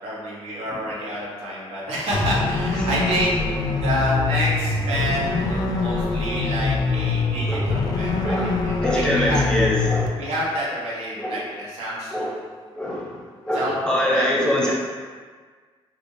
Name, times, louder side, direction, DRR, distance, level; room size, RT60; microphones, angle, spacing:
voice 1, 0.0-3.3 3.7-9.4 10.2-12.4 13.5-14.3 14.6-14.7, equal, 90° right, -6 dB, 0.8 m, -28 dB
sound 1, 2.1-10.1, left 3 dB, 40° left, 0.4 m, -24 dB
voice 2, 8.2-10.1 11.2-11.4 12.1-12.3 12.7-14.7, left 1 dB, 10° left, -5 dB, 0.7 m, -24 dB
3.0 x 2.4 x 2.6 m, 1.5 s
cardioid pair, 100°, 10 cm